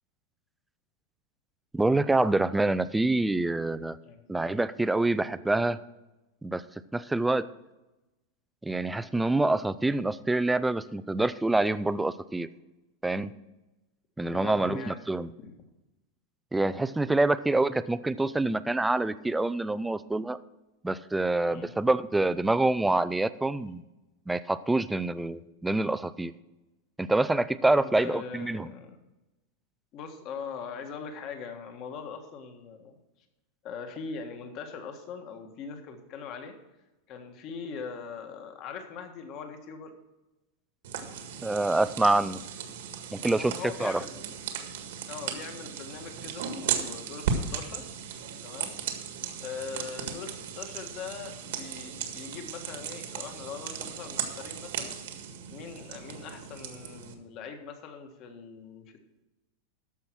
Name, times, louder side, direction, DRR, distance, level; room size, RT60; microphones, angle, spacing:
voice 1, 1.7-4.0 4.3-5.8 6.4-6.6 6.9-7.5 8.6-12.5 13.0-13.3 14.2-15.3 16.5-20.4 20.8-23.8 24.3-26.3 27.0-28.7 41.4-42.4 43.1-43.5 43.8-44.0, right 2 dB, 5° right, 15 dB, 0.3 m, -26 dB
voice 2, 14.3-15.0 15.4-15.5 21.5-21.7 27.7-29.0 29.9-33.0 33.6-36.6 37.1-39.9 43.3-44.4 45.1-47.9 48.4-48.7 49.4-55.0 55.5-58.9, left 5 dB, 35° left, 5 dB, 1.6 m, -41 dB
sound 1, 40.8-57.1, right 7 dB, 70° right, 1.7 m, -36 dB
13.5 x 5.6 x 6.1 m, 1.0 s
supercardioid pair, 165°, 0 cm